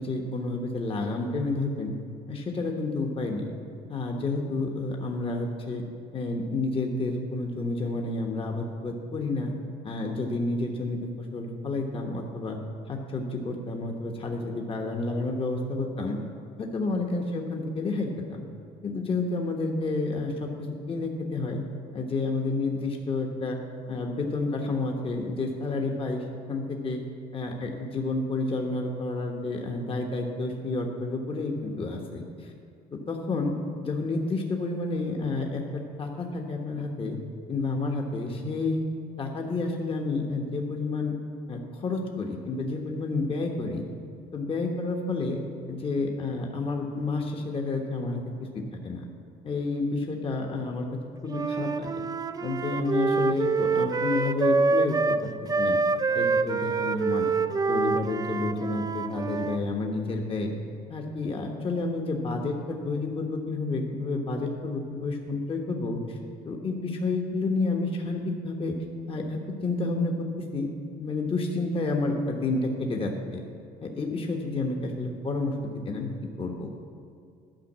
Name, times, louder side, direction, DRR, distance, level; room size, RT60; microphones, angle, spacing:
voice 1, 0.0-1.9 2.3-3.5 3.9-5.8 6.1-9.5 9.8-12.6 12.9-16.2 16.6-18.4 18.8-21.6 21.9-23.6 23.9-27.0 27.3-32.5 33.1-33.6 33.8-37.2 37.5-38.8 39.2-41.1 41.5-43.8 44.3-45.4 45.7-48.2 48.5-49.0 49.4-50.9 51.2-51.9 52.4-55.0 55.6-55.8 56.1-57.3 57.7-60.5 60.9-66.2 66.4-68.7 69.1-70.7 71.0-73.4 73.8-75.5 75.8-76.1 76.4-76.7, left 3 dB, 35° left, 2 dB, 1.1 m, -30 dB
Wind instrument woodwind instrument, 51.3-59.6, right 4 dB, 20° right, 0.4 m, -26 dB
12.0 x 5.2 x 7.3 m, 2.4 s
cardioid pair, 110°, 17 cm